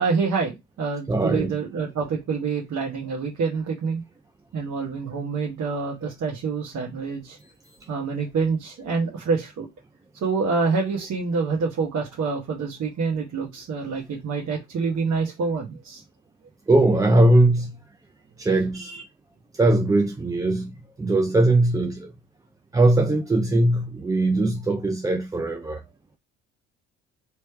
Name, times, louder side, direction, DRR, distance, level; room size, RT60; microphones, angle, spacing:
voice 1, 0.0-4.0 4.5-7.4 7.9-9.7 10.2-16.0 18.7-19.0, right 4 dB, 50° right, 1.2 m, -27 dB
voice 2, 1.1-1.5 16.7-17.7 18.4-18.9 19.6-20.7 21.0-22.1 22.7-25.8, right 2 dB, 10° right, 0.4 m, -20 dB
3.2 x 3.1 x 3.2 m
hypercardioid pair, 65°, 36 cm